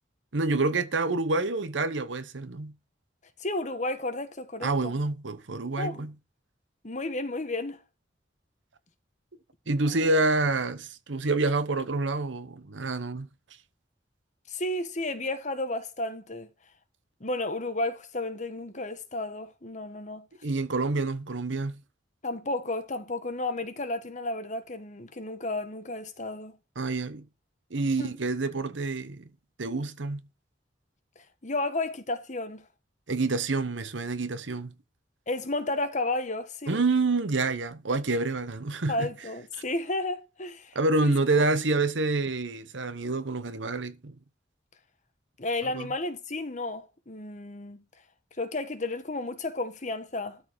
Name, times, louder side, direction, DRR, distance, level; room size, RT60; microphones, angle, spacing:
voice 1, 0.3-2.7 4.6-6.1 9.7-13.3 20.4-21.8 26.8-27.2 27.7-29.3 29.6-30.2 33.1-34.7 36.7-39.1 40.7-44.1 45.7-45.9, right 3 dB, 80° right, 1.0 m, -27 dB
voice 2, 3.4-4.9 5.8-6.1 6.8-7.8 9.8-10.0 14.5-16.5 17.2-20.2 22.2-26.6 28.0-28.1 31.4-32.7 35.3-36.8 38.9-40.8 41.0-41.1 45.4-47.8 48.4-50.5, left 2 dB, 40° left, 1.3 m, -32 dB
13.0 x 4.7 x 4.7 m
head